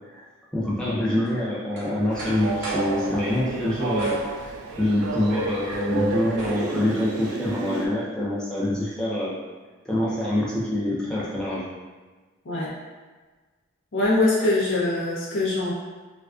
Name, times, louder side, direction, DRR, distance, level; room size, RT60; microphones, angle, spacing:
voice 1, 0.5-4.2 4.4-9.3 9.9-11.6, left 1 dB, 5° left, -8 dB, 0.4 m, -25 dB
sound 1, 1.3-3.0 4.0-5.0 5.4-7.2, right 1 dB, 50° right, 0.7 m, -40 dB
Train, 2.1-7.9, right 3 dB, 80° right, 0.3 m, -30 dB
voice 2, 13.9-15.7, left 2 dB, 55° left, -6 dB, 0.5 m, -23 dB
2.4 x 2.2 x 2.3 m, 1.3 s
head